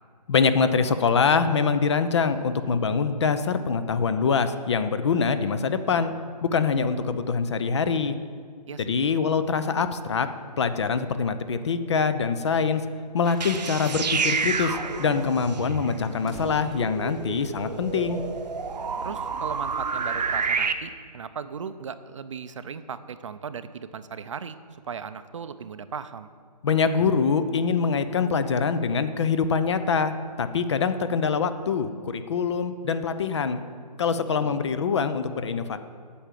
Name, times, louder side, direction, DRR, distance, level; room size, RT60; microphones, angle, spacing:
voice 1, 0.3-6.1 6.4-8.2 8.8-10.3 10.6-12.8 13.1-18.2 26.6-30.1 30.4-33.6 34.0-35.8, left 5 dB, 40° left, 11 dB, 0.6 m, -24 dB
voice 2, 8.7-9.0 19.0-24.6 24.9-26.3 34.4-34.6, right 6 dB, 50° right, 12 dB, 0.5 m, -37 dB
sound 1, 13.3-13.6 13.9-14.0 14.2-14.3 14.8-17.8, equal, ahead, 1.0 m, -45 dB
sound 2, 13.3-20.7, right 5 dB, 80° right, 0.9 m, -29 dB
8.5 x 7.0 x 7.5 m, 2.1 s
hypercardioid pair, 165°, 21 cm